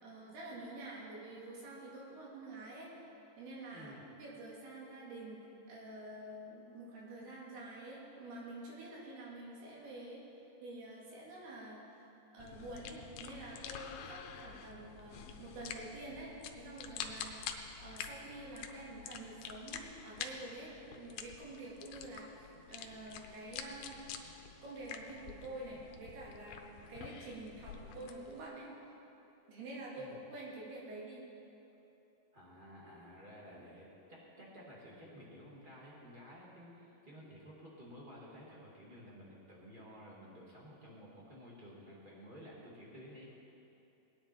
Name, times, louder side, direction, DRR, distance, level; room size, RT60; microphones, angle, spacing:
voice 1, 0.0-2.9 3.4-5.4 5.7-10.2 10.6-12.1 12.3-24.0 24.6-28.9 29.5-31.3, right 2 dB, 85° right, -4 dB, 4.4 m, -48 dB
voice 2, 3.7-4.1 30.0-30.2 32.3-43.2, equal, 20° right, -5 dB, 1.6 m, -53 dB
sound 1, 12.4-28.4, left 7 dB, 80° left, 2.1 m, -48 dB
19.0 x 9.6 x 4.4 m, 3.0 s
omnidirectional pair, 4.4 m